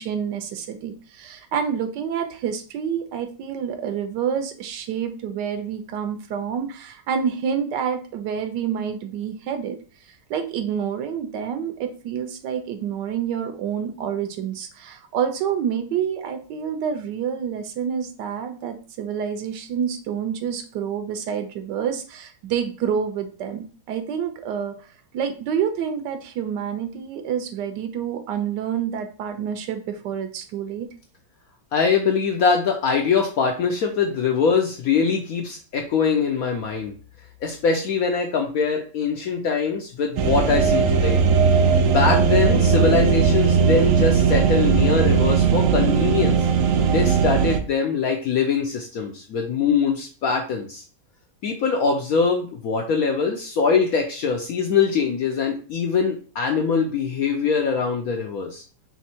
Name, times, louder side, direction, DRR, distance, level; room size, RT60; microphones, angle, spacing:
voice 1, 0.0-24.7 25.1-30.9, right 8 dB, 75° right, 7 dB, 1.1 m, -28 dB
voice 2, 31.7-36.9 37.4-41.2 41.6-46.4 46.9-50.8 51.4-58.6, left 5 dB, 70° left, 2 dB, 0.8 m, -23 dB
sound 1, 40.2-47.6, right 6 dB, 90° right, 0.7 m, -18 dB
3.6 x 3.1 x 4.2 m, 0.39 s
omnidirectional pair, 2.1 m